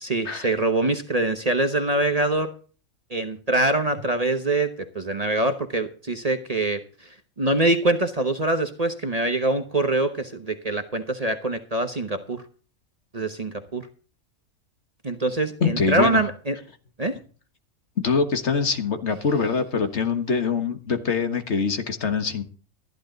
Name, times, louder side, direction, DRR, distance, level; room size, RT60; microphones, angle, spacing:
voice 1, 0.0-2.5 3.1-6.8 7.4-12.4 13.1-13.9 15.0-16.6 17.0-17.2, right 2 dB, 30° right, 7 dB, 1.0 m, -24 dB
voice 2, 15.6-16.2 18.0-22.4, left 5 dB, 55° left, 8 dB, 1.7 m, -24 dB
13.5 x 11.5 x 3.9 m, 0.38 s
omnidirectional pair, 1.4 m